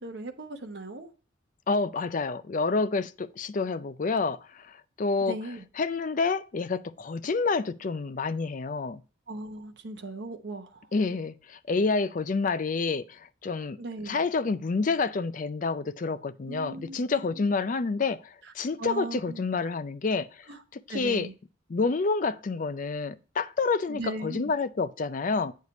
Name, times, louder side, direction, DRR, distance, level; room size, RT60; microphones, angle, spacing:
voice 1, 0.0-1.1 5.2-5.6 9.3-10.8 13.8-14.3 16.5-17.5 18.4-18.5 18.8-19.4 20.5-20.6 20.9-21.3 23.9-24.5, right 2 dB, 60° right, 0.9 m, -38 dB
voice 2, 1.7-5.4 5.8-9.0 10.9-13.8 14.0-20.5 20.9-21.3 21.7-25.5, left 4 dB, 40° left, 0.4 m, -28 dB
8.4 x 4.9 x 4.1 m
head